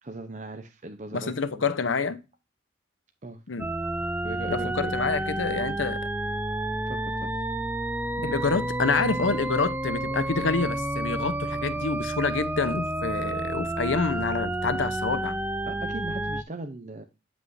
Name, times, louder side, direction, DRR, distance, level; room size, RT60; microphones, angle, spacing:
voice 1, 0.0-1.7 3.2-3.4 4.2-4.9 6.9-7.4 15.7-17.0, right 2 dB, 40° right, 0.7 m, -38 dB
voice 2, 1.1-2.2 3.5-3.7 4.5-6.1 8.2-15.4, left 4 dB, 85° left, 0.8 m, -27 dB
sound 1, 3.6-16.4, right 1 dB, 10° right, 0.3 m, -30 dB
9.2 x 6.1 x 2.6 m
head